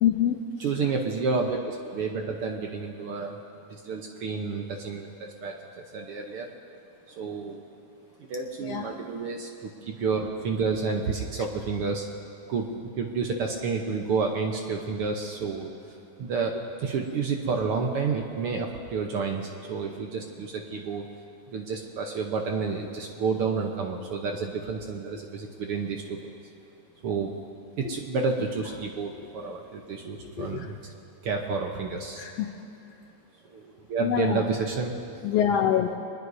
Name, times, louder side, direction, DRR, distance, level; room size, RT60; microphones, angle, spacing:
voice 1, 0.0-0.4 8.6-8.9 30.2-30.7 32.2-32.5 34.0-34.4 35.2-35.9, left 10 dB, 75° left, 4 dB, 1.5 m, -25 dB
voice 2, 0.6-3.4 3.7-6.5 7.1-7.6 8.3-12.1 12.5-21.1 21.5-26.4 27.0-27.3 27.8-30.8 31.2-32.2 33.5-34.9, right 4 dB, 65° right, 2 dB, 1.5 m, -30 dB
23.0 x 20.5 x 2.7 m, 2.8 s
omnidirectional pair, 3.3 m